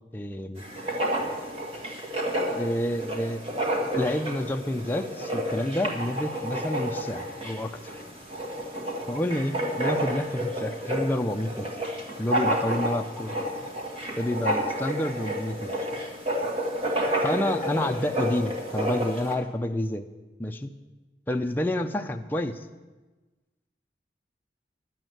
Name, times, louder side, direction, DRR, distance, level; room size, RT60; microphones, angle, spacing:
voice 1, 0.1-0.6 2.5-3.4 3.9-8.0 9.1-11.7 12.2-13.4 14.2-15.7 17.2-20.1 20.4-20.7 21.3-22.6, left 1 dB, 10° left, 4 dB, 0.4 m, -29 dB
Writing, 0.6-19.3, right 1 dB, 30° right, 1.8 m, -30 dB
11.0 x 8.0 x 7.8 m, 1.2 s
head